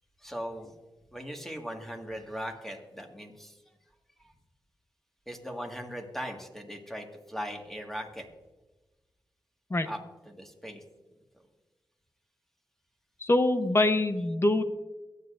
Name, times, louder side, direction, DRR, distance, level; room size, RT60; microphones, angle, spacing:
voice 1, 0.2-0.7 1.1-3.6 4.2-4.3 5.3-8.3 9.8-10.8, equal, 5° left, 2 dB, 1.8 m, -39 dB
voice 2, 13.2-14.6, left 2 dB, 30° left, 9 dB, 0.9 m, -24 dB
23.0 x 8.2 x 2.6 m, 1.1 s
cardioid pair, 75°, 8 cm